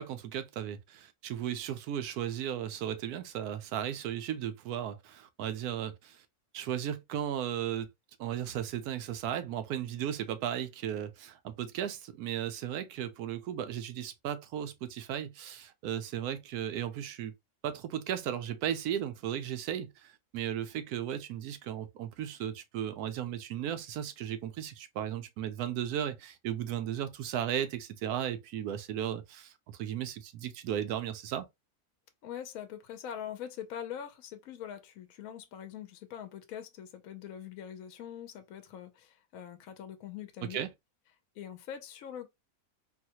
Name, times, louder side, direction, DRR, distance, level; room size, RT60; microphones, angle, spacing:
voice 1, 0.0-6.2 6.5-7.9 8.2-17.3 17.6-31.5 40.4-40.7, right 10 dB, 85° right, 1.1 m, -35 dB
voice 2, 32.2-40.6 41.4-42.3, left 9 dB, 70° left, 1.0 m, -43 dB
4.0 x 2.2 x 2.8 m
omnidirectional pair, 1.6 m